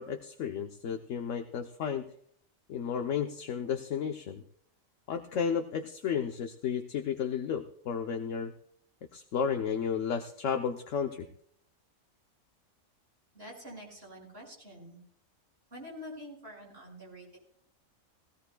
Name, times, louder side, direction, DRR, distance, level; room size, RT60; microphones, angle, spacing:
voice 1, 0.0-2.1 2.7-4.4 5.1-8.5 9.1-11.3, left 7 dB, 65° left, 5 dB, 1.2 m, -33 dB
voice 2, 13.3-15.0 15.7-17.4, equal, 45° right, -2 dB, 5.9 m, -46 dB
19.0 x 16.5 x 2.3 m, 0.68 s
omnidirectional pair, 1.4 m